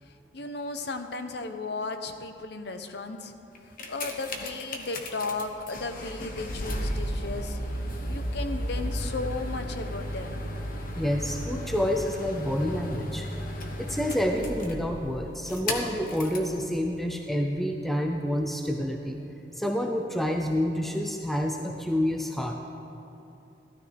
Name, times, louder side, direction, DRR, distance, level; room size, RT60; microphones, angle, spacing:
voice 1, 0.0-3.3 3.6-7.6 8.1-10.5, left 3 dB, 70° left, 8 dB, 0.8 m, -35 dB
sound 1, 3.6-16.5 17.3-17.4, left 1 dB, 50° left, 1.2 m, -34 dB
voice 2, 10.9-13.3 13.8-19.2 19.5-22.6, equal, ahead, 2 dB, 0.5 m, -28 dB
14.5 x 12.5 x 3.4 m, 2.9 s
head